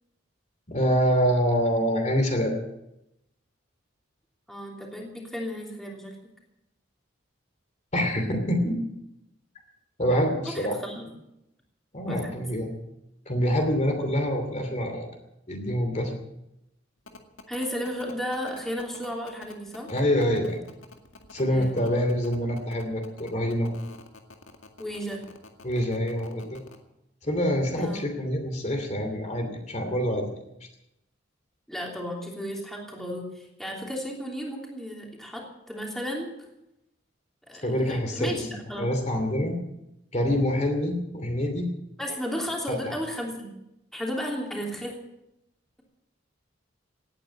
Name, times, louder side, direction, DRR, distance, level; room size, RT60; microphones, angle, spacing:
voice 1, 0.7-2.6 7.9-8.8 10.0-10.8 11.9-12.7 13.3-15.1 15.5-16.2 19.9-20.6 21.3-23.7 25.6-26.6 27.2-30.3 37.6-38.5 38.8-39.6 40.1-41.7, equal, 35° left, 4 dB, 2.7 m, -26 dB
voice 2, 4.5-6.1 10.5-11.1 12.1-12.3 17.5-19.9 21.5-21.8 24.8-25.2 27.8-28.1 31.7-36.3 37.5-38.9 42.0-43.5 43.9-44.9, equal, ahead, -2 dB, 3.1 m, -34 dB
sound 1, 17.1-26.8, left 3 dB, 85° left, 2.1 m, -47 dB
18.0 x 9.4 x 8.5 m, 0.87 s
head